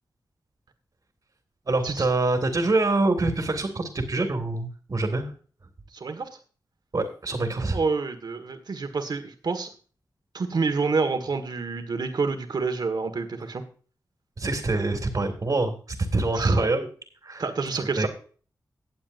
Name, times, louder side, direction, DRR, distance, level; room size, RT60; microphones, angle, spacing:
voice 1, 1.7-5.3 6.9-7.8 14.4-15.8 16.1-16.9 17.2-17.4 18.0-18.1, right 2 dB, 55° right, 3 dB, 2.1 m, -25 dB
voice 2, 5.9-6.3 7.7-9.7 10.3-13.6 16.3-16.7 17.4-18.1, right 4 dB, 70° right, 7 dB, 1.6 m, -28 dB
18.5 x 7.3 x 2.6 m, 0.40 s
cardioid pair, 50°, 8 cm